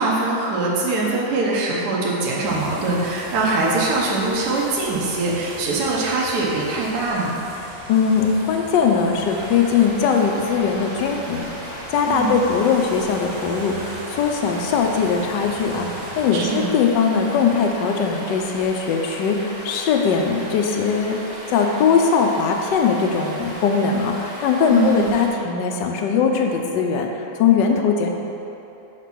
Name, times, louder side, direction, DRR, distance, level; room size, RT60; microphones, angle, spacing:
voice 1, 0.0-7.4 12.1-12.3 16.3-16.7 24.7-25.1, right 3 dB, 55° right, -4 dB, 1.3 m, -22 dB
sound 1, 2.4-16.6, right 2 dB, 80° right, 1.9 m, -39 dB
voice 2, 7.9-21.2 21.5-28.1, left 6 dB, 70° left, 3 dB, 1.1 m, -20 dB
Stream, 9.2-25.3, equal, 20° right, 1.0 m, -36 dB
5.9 x 4.5 x 5.9 m, 3.0 s
omnidirectional pair, 2.3 m